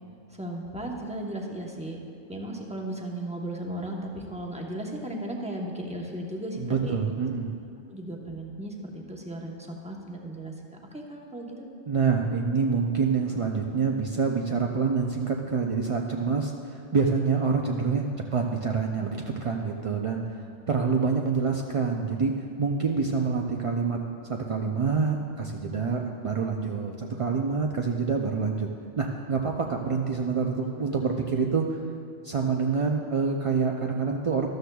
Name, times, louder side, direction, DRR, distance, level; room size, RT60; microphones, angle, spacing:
voice 1, 0.3-2.0 2.3-7.0 7.9-10.5 10.9-11.6, right 1 dB, 5° right, -1 dB, 0.9 m, -36 dB
voice 2, 6.6-7.5 11.9-18.1 18.3-24.0 24.2-28.7 29.0-31.8 32.2-34.5, right 5 dB, 55° right, 1 dB, 0.3 m, -27 dB
13.0 x 13.0 x 2.3 m, 2.4 s
omnidirectional pair, 1.2 m